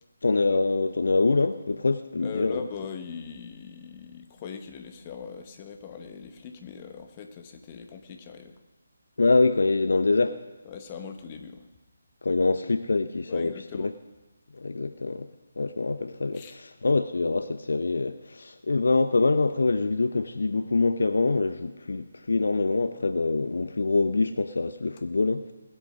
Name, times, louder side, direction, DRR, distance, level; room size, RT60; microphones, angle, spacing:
voice 1, 0.2-2.6 9.2-10.4 12.2-13.9 14.5-15.3 15.6-25.4, left 3 dB, 65° left, 0.8 m, -25 dB
voice 2, 2.2-8.6 10.6-11.7 13.3-13.9 16.3-16.6, left 6 dB, 25° left, 1.4 m, -40 dB
20.0 x 8.2 x 6.3 m
figure-of-eight pair, 150°, 0 cm